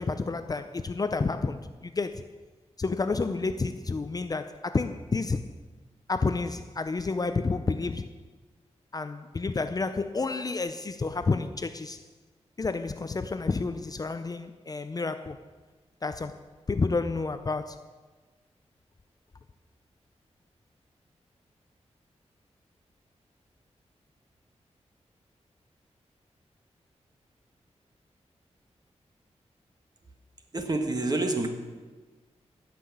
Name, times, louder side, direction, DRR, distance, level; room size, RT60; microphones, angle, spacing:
voice 1, 0.0-2.2 2.8-5.4 6.1-8.1 8.9-12.0 12.6-15.4 16.0-16.4 16.7-17.8, left 3 dB, 35° left, 0.5 m, -30 dB
voice 2, 30.5-31.5, right 2 dB, 35° right, 1.6 m, -27 dB
15.5 x 6.0 x 8.5 m
wide cardioid pair, 120°, 12 cm